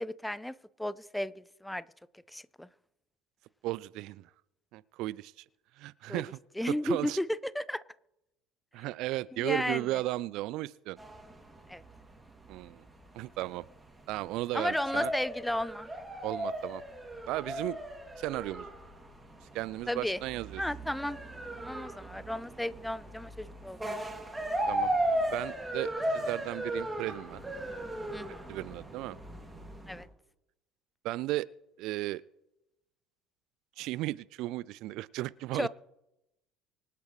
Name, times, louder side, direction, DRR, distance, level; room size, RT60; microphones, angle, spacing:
voice 1, 0.0-1.8 2.3-2.7 6.1-6.2 6.6-7.8 9.3-10.0 11.7-11.8 14.5-15.9 19.9-20.2 20.6-21.2 21.6-23.8 28.1-28.5 29.9-30.1 35.5-35.7, left 1 dB, 5° left, 19 dB, 0.5 m, -34 dB
voice 2, 3.6-4.2 4.7-5.4 5.8-6.4 6.8-7.2 8.7-11.0 12.5-12.8 13.1-13.7 14.1-15.1 16.2-16.8 17.3-17.8 18.2-18.7 19.5-20.6 24.7-24.9 25.3-27.4 28.5-29.2 31.0-31.5 31.8-32.2 33.8-35.7, right 17 dB, 55° right, 21 dB, 0.3 m, -35 dB
sound 1, 11.0-30.0, right 1 dB, 10° right, 2.6 m, -37 dB
25.0 x 8.4 x 3.2 m, 0.90 s
figure-of-eight pair, 60°, 0 cm